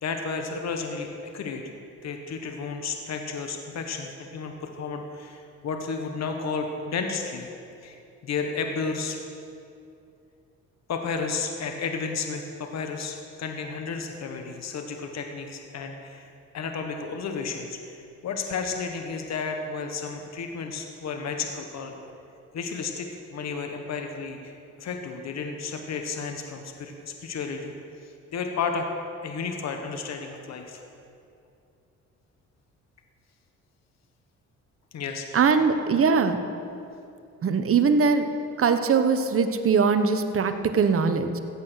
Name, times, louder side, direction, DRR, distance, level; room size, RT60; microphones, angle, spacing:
voice 1, 0.0-1.7 2.0-7.5 7.8-9.2 10.9-16.3 16.5-22.0 22.5-24.5 24.8-27.8 28.0-28.9 29.2-30.8 34.9-35.4, left 5 dB, 60° left, 4 dB, 1.4 m, -32 dB
voice 2, 35.3-36.5 37.4-38.3 38.6-41.4, right 5 dB, 45° right, 8 dB, 1.1 m, -21 dB
15.0 x 8.4 x 6.4 m, 2.6 s
cardioid pair, 90°, 30 cm